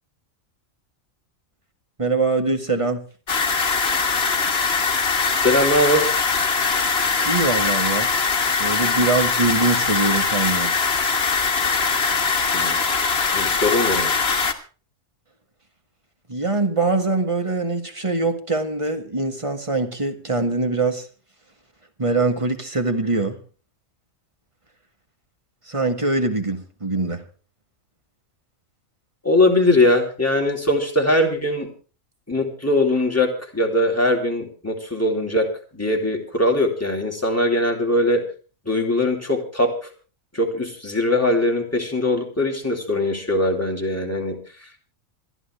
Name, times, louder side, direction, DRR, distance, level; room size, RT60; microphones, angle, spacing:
voice 1, 2.0-3.0 7.3-8.1 8.6-10.7 16.3-21.1 22.0-23.4 25.7-27.2, right 3 dB, 25° right, 6 dB, 1.9 m, -23 dB
sound 1, 3.3-14.5, left 4 dB, 50° left, 1.7 m, -21 dB
voice 2, 5.4-6.1 12.5-12.8 13.3-14.1 29.2-31.7 32.3-35.5 35.7-38.2 38.6-39.9 40.3-44.8, left 1 dB, 10° left, 0 dB, 3.1 m, -21 dB
26.5 x 11.0 x 3.3 m, 0.37 s
omnidirectional pair, 1.4 m